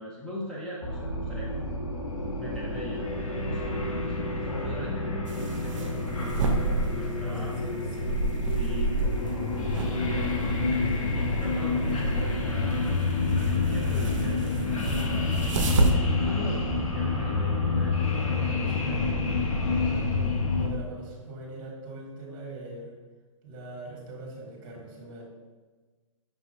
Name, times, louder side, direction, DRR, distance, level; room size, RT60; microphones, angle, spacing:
voice 1, 0.0-1.7 2.4-6.0 6.4-7.9 8.5-10.7 11.1-12.7 13.3-14.8 15.8-19.0, right 1 dB, 5° left, -6 dB, 0.4 m, -40 dB
sound 1, 0.8-20.7, left 3 dB, 80° left, 0.8 m, -28 dB
sound 2, 5.3-15.9, right 2 dB, 65° right, 0.5 m, -31 dB
voice 2, 6.9-8.2 18.0-19.1 19.9-22.9 23.4-25.2, right 2 dB, 40° right, -2 dB, 1.3 m, -42 dB
5.6 x 2.7 x 2.7 m, 1.3 s
hypercardioid pair, 125°, 17 cm